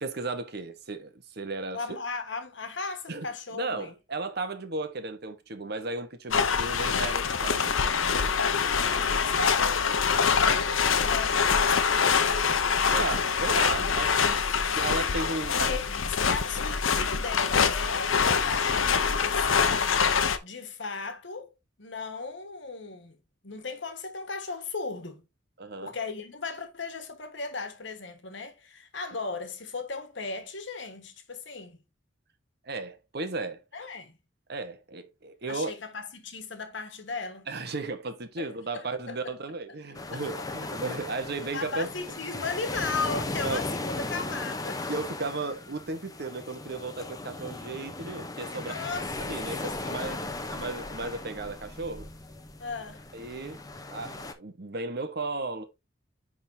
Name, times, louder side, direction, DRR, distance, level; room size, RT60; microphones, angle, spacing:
voice 1, 0.0-1.8 3.1-8.3 9.4-9.5 12.9-14.4 14.7-15.8 25.6-25.9 32.6-33.6 34.5-35.7 37.5-41.9 43.1-43.6 44.9-48.7 49.2-50.2 50.5-52.1 53.1-53.6 53.9-55.6, right 3 dB, 55° right, 1.1 m, -35 dB
voice 2, 1.7-3.9 8.6-12.2 15.5-20.0 20.4-21.5 21.8-23.2 23.4-25.2 25.8-31.8 33.7-34.2 35.5-37.5 38.4-39.3 40.1-40.4 41.5-44.8 48.5-49.1 49.6-50.4 52.6-53.0, left 4 dB, 65° left, 1.5 m, -36 dB
sound 1, 6.3-20.4, left 6 dB, 90° left, 0.8 m, -25 dB
sound 2, 39.9-54.3, left 2 dB, 20° left, 0.8 m, -37 dB
10.5 x 3.7 x 2.7 m
head